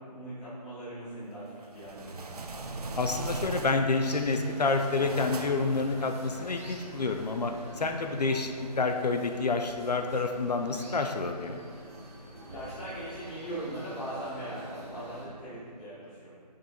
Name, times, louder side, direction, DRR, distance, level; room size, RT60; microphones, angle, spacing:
voice 1, 0.1-2.2 12.4-16.3, right 1 dB, ahead, -16 dB, 1.0 m, -40 dB
sound 1, 1.6-4.1 4.5-5.8, right 2 dB, 65° right, 0.7 m, -38 dB
voice 2, 3.0-11.6, left 3 dB, 75° left, 5 dB, 0.6 m, -28 dB
sound 2, 3.9-15.3, equal, 20° right, 0.8 m, -45 dB
7.0 x 5.4 x 3.8 m, 2.1 s
figure-of-eight pair, 170°, 21 cm